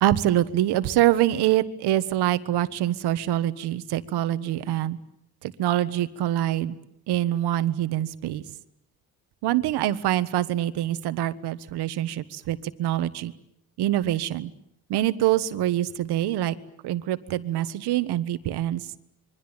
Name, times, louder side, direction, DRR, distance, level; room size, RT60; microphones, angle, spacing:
voice 1, 0.0-5.0 5.4-6.7 7.1-8.4 9.4-13.3 13.8-14.5 14.9-16.5 16.8-18.9, right 13 dB, 80° right, 13 dB, 1.5 m, -25 dB
26.5 x 23.5 x 9.0 m, 0.73 s
cardioid pair, 165°, 39 cm